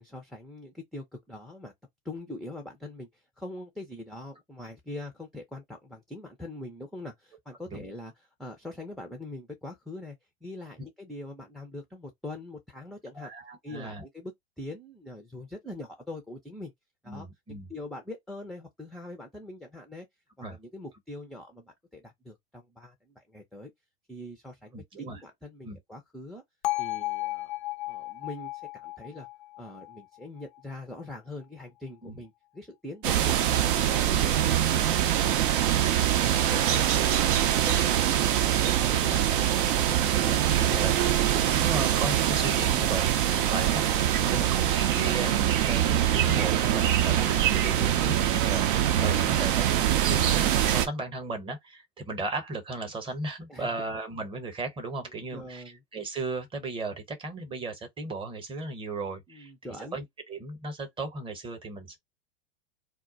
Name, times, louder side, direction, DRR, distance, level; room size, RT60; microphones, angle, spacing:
voice 1, 0.0-1.7 2.0-10.2 10.4-13.3 13.6-14.3 14.6-16.7 17.0-17.3 17.7-20.1 20.5-23.7 24.1-26.4 26.8-27.5 27.9-29.3 29.6-36.1 36.4-39.3 44.2-44.5 47.2-48.2 48.8-49.1 53.5-53.7 55.1-55.8 59.3-60.0, left 1 dB, ahead, 0.5 m, -43 dB
voice 2, 13.2-14.0 17.1-17.7 20.4-20.6 24.7-25.2 25.6-25.8 32.0-32.2 34.2-34.4 39.4-43.9 44.3-55.6 55.9-59.5 59.9-62.0, right 3 dB, 15° right, 0.8 m, -36 dB
Bell, 26.6-30.7, left 19 dB, 50° left, 0.5 m, -34 dB
sound 1, 33.0-50.9, right 11 dB, 55° right, 0.6 m, -24 dB
2.3 x 2.1 x 3.8 m
hypercardioid pair, 105°, 31 cm